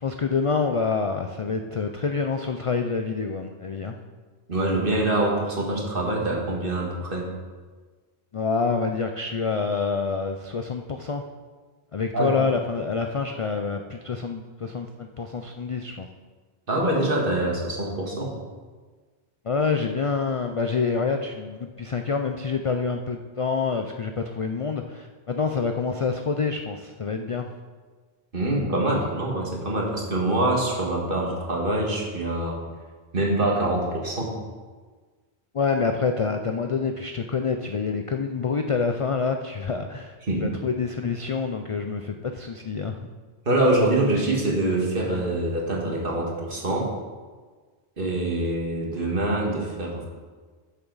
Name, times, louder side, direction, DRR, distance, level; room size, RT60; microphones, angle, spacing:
voice 1, 0.0-4.0 8.3-11.2 11.9-16.1 19.4-27.5 35.5-40.2 40.4-43.0, left 5 dB, 50° left, 5 dB, 0.4 m, -27 dB
voice 2, 4.5-7.3 12.1-12.4 16.7-18.4 28.3-32.6 33.1-34.4 40.3-40.5 43.5-46.9 48.0-50.1, right 1 dB, 55° right, -1 dB, 1.9 m, -25 dB
12.0 x 6.9 x 4.0 m, 1.4 s
omnidirectional pair, 1.1 m